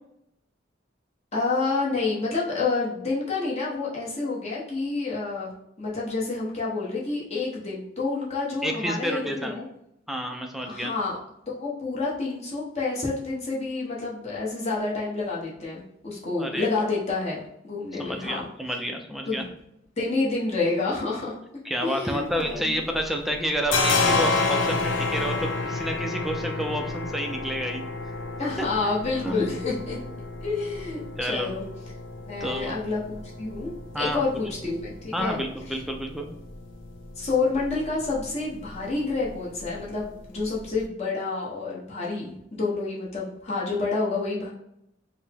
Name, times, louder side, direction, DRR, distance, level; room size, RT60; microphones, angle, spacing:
voice 1, 1.3-5.5 5.8-9.7 10.7-11.2 11.5-18.5 19.3-19.5 20.0-21.3 21.8-22.8 28.4-30.0 30.4-31.6 32.2-35.4 35.7-35.8 37.2-44.5, left 3 dB, 35° left, -5 dB, 1.1 m, -29 dB
voice 2, 8.6-9.6 10.1-10.9 16.4-16.9 18.0-19.4 21.6-27.9 29.2-29.5 31.2-31.5 32.4-32.8 33.9-34.2 35.1-36.3, equal, ahead, 3 dB, 0.4 m, -29 dB
sound 1, 22.1-23.1 23.3-40.8, left 3 dB, 85° left, 0.6 m, -31 dB
4.6 x 2.1 x 3.4 m, 0.78 s
head